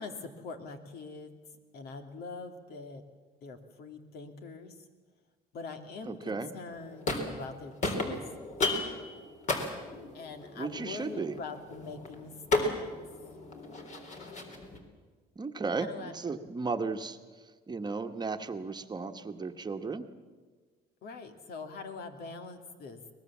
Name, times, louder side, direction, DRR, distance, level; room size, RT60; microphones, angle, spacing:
voice 1, 0.0-1.4 1.7-3.0 3.4-4.7 5.5-8.2 10.1-12.9 15.8-16.1 21.0-23.1, left 4 dB, 70° left, 7 dB, 2.5 m, -43 dB
voice 2, 6.0-6.5 10.6-11.4 15.4-17.2 17.7-20.1, right 4 dB, 25° right, 6 dB, 1.3 m, -35 dB
sound 1, 6.7-7.5 7.8-14.8, left 2 dB, 45° left, 3.8 m, -34 dB
23.5 x 20.0 x 7.3 m, 1.4 s
cardioid pair, 110°, 17 cm